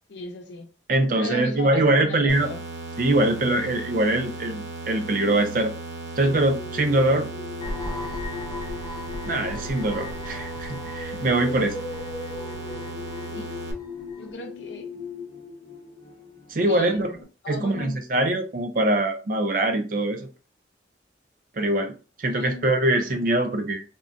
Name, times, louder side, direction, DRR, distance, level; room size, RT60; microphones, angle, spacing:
voice 1, 0.1-0.7 1.1-2.6 13.3-13.5 14.2-14.9 16.6-17.0 17.4-18.0 22.3-22.7, left 2 dB, 75° left, 0.6 m, -36 dB
voice 2, 0.9-2.5 3.0-5.7 6.2-7.3 9.3-11.8 16.5-17.1 17.5-20.3 21.6-21.9 22.2-23.8, right 1 dB, 50° right, 0.5 m, -23 dB
sound 1, 2.3-13.7, right 2 dB, 90° right, 0.7 m, -36 dB
sound 2, 6.2-17.2, left 4 dB, 35° left, 0.8 m, -39 dB
sound 3, 7.6-14.3, left 1 dB, 15° left, 0.4 m, -39 dB
3.7 x 2.1 x 2.5 m
head